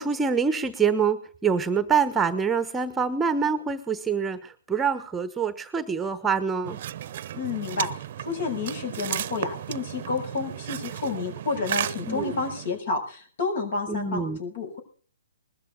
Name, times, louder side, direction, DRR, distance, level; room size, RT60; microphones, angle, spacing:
voice 1, 0.0-6.8 12.1-12.3 13.9-14.4, right 6 dB, 10° right, 12 dB, 1.1 m, -25 dB
sound 1, 6.6-12.8, right 11 dB, 50° right, 0.8 m, -34 dB
voice 2, 7.3-14.8, left 4 dB, 60° left, 7 dB, 6.5 m, -30 dB
20.5 x 13.5 x 3.9 m, 0.43 s
hypercardioid pair, 140°, 0 cm